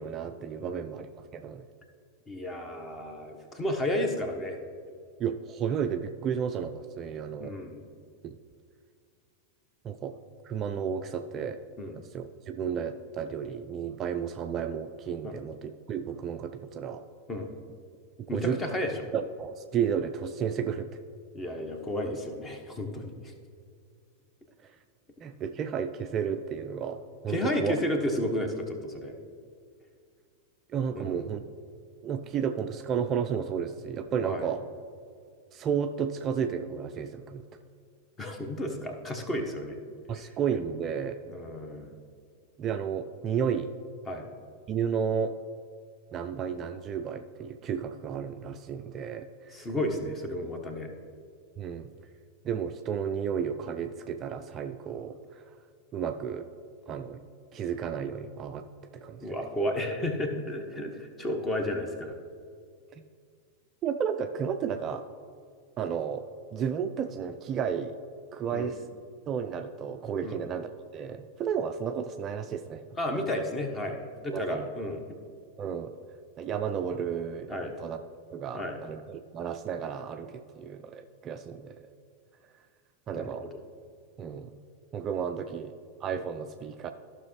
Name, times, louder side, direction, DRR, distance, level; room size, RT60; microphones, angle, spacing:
voice 1, 0.0-1.6 5.2-7.5 8.2-8.4 9.8-11.6 12.0-17.0 18.3-18.6 19.1-20.9 24.6-24.7 25.2-27.8 30.7-31.4 32.0-34.6 35.5-37.4 40.1-41.2 42.6-43.7 44.7-45.4 46.1-49.7 51.6-51.9 52.4-55.4 55.9-56.5 56.9-57.2 57.5-58.6 58.9-59.4 62.9-63.0 63.8-65.1 65.8-68.0 68.3-68.8 69.3-73.2 74.3-74.7 75.6-76.0 76.4-78.0 78.3-81.8 83.1-83.5 84.2-84.6 84.9-85.8 86.0-86.9, right 7 dB, 30° right, 7 dB, 0.4 m, -32 dB
voice 2, 2.3-4.6 7.4-7.8 11.8-12.0 15.2-15.3 17.3-17.5 18.3-18.9 21.3-23.3 27.3-29.1 30.9-31.2 34.2-34.5 38.2-39.8 40.1-40.3 41.3-41.9 44.1-44.2 49.5-50.9 59.2-62.2 68.5-68.7 70.2-70.4 72.9-75.2 77.5-77.7 78.5-78.8 83.1-83.6, left 1 dB, 20° left, 5 dB, 1.1 m, -32 dB
14.5 x 5.9 x 3.1 m, 2.2 s
figure-of-eight pair, 90°, 0 cm